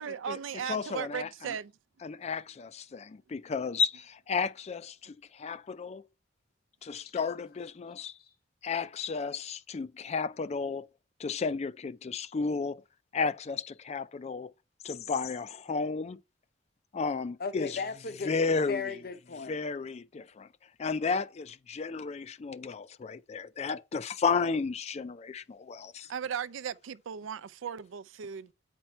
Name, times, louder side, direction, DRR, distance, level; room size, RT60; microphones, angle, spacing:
voice 1, 0.0-1.7 26.1-28.5, right 7 dB, 80° right, 0.4 m, -37 dB
voice 2, 0.7-1.3 2.0-6.0 6.8-8.1 8.6-10.9 11.2-12.8 13.1-14.5 14.8-16.2 16.9-17.7 18.3-18.9 19.5-20.5 20.8-26.1, left 5 dB, 35° left, 0.4 m, -33 dB
voice 3, 17.4-18.4 18.7-19.6, left 5 dB, 50° left, 0.7 m, -36 dB
8.8 x 4.5 x 4.3 m
head